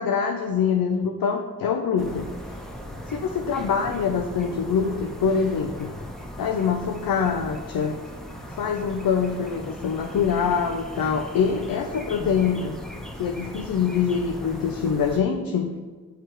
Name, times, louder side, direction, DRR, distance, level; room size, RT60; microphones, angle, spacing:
voice 1, 0.0-2.3 3.1-5.9 6.4-8.0 8.6-12.7 13.2-15.7, left 6 dB, 80° left, 3 dB, 0.5 m, -24 dB
sound 1, 2.0-15.2, equal, ahead, 0.8 m, -38 dB
6.5 x 3.2 x 4.4 m, 1.4 s
cardioid pair, 45°, 35 cm